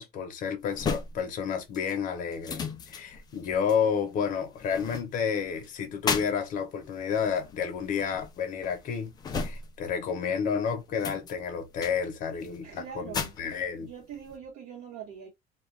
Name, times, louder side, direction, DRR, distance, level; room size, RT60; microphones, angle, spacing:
voice 1, 0.0-13.9, left 7 dB, 50° left, 0.9 m, -31 dB
sound 1, 0.7-10.1 10.4-14.4, left 5 dB, 25° left, 0.4 m, -37 dB
voice 2, 12.6-13.4 13.8-15.3, right 8 dB, 55° right, 1.2 m, -43 dB
2.4 x 2.4 x 3.2 m
cardioid pair, 155°, 17 cm